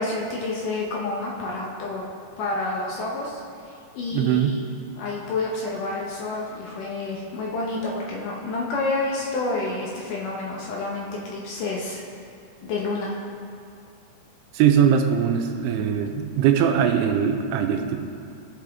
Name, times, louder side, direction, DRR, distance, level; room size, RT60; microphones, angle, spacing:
voice 1, 0.0-2.1 2.4-4.6 4.9-12.0 12.6-13.1, left 2 dB, 70° left, -3 dB, 2.2 m, -29 dB
voice 2, 4.1-4.6 14.5-18.0, right 8 dB, 85° right, 5 dB, 2.6 m, -21 dB
16.5 x 5.9 x 3.5 m, 2.3 s
omnidirectional pair, 4.6 m